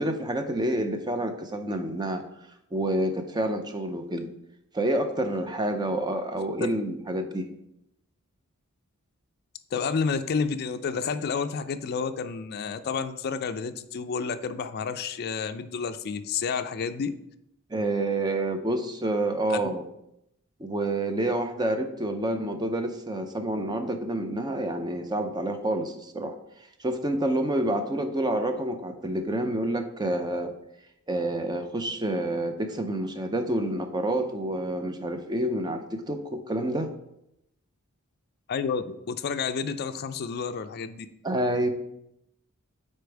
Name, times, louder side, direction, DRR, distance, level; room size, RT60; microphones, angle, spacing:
voice 1, 0.0-2.2 2.7-4.3 4.7-7.5 17.7-19.8 20.6-26.3 26.8-30.5 31.1-36.9 41.2-41.7, right 1 dB, 20° right, 6 dB, 0.5 m, -28 dB
voice 2, 9.7-17.2 19.5-19.6 38.5-41.1, left 5 dB, 45° left, 10 dB, 0.4 m, -30 dB
5.1 x 4.3 x 4.6 m, 0.81 s
head